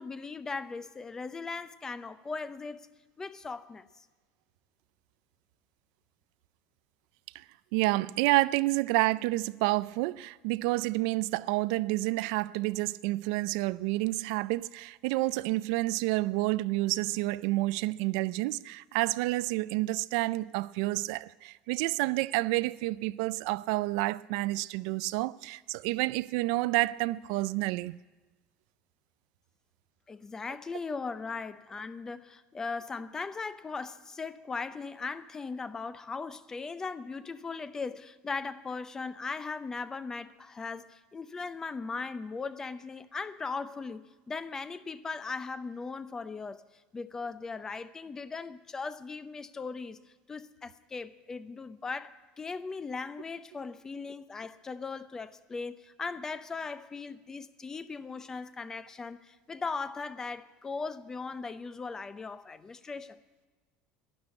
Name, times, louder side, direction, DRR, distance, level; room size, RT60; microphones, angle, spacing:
voice 1, 0.0-2.9 3.2-3.9 30.1-46.6 46.9-50.0 50.3-63.2, left 4 dB, 15° left, 0.6 m, -38 dB
voice 2, 7.7-28.0, right 20 dB, 75° right, 0.4 m, -29 dB
12.0 x 10.5 x 9.5 m
cardioid pair, 140°, 3 cm